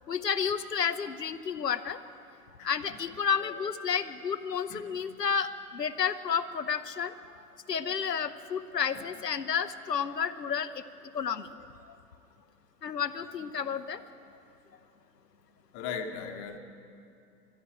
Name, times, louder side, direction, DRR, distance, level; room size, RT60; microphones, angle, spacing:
voice 1, 0.1-2.0 2.6-5.5 5.7-7.1 7.7-10.7 11.1-11.5 12.8-14.0, left 7 dB, 85° left, 10 dB, 0.7 m, -31 dB
voice 2, 2.6-3.0 4.7-4.8 8.9-9.0 15.7-16.6, left 6 dB, 25° left, 5 dB, 1.0 m, -38 dB
13.5 x 11.5 x 9.0 m, 2.6 s
figure-of-eight pair, 115°, 47 cm